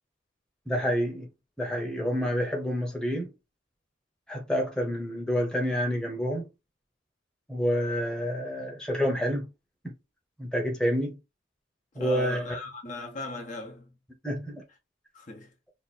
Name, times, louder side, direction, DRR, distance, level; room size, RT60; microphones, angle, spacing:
voice 1, 0.7-1.3 1.6-3.3 4.3-6.5 7.5-9.5 10.4-11.2 11.9-12.6 14.2-14.6, equal, 5° left, 1.0 m, -28 dB
voice 2, 11.9-13.9 15.1-15.5, left 2 dB, 45° left, 1.0 m, -38 dB
3.0 x 2.6 x 4.2 m
head